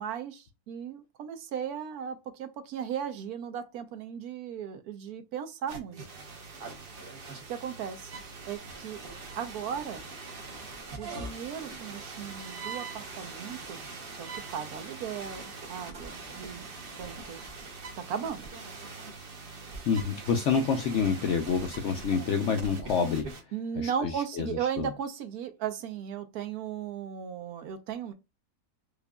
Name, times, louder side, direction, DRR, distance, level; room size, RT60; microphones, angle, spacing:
voice 1, 0.0-6.0 7.5-8.1 8.4-9.0 9.4-10.1 11.0-13.8 14.2-16.7 17.0-17.4 18.0-18.5 23.5-28.1, right 8 dB, 75° right, 1.1 m, -36 dB
sound 1, 5.7-23.4, right 3 dB, 45° right, 0.8 m, -42 dB
voice 2, 19.8-23.3 23.8-24.9, left 6 dB, 70° left, 0.7 m, -28 dB
4.9 x 2.4 x 2.2 m
omnidirectional pair, 1.7 m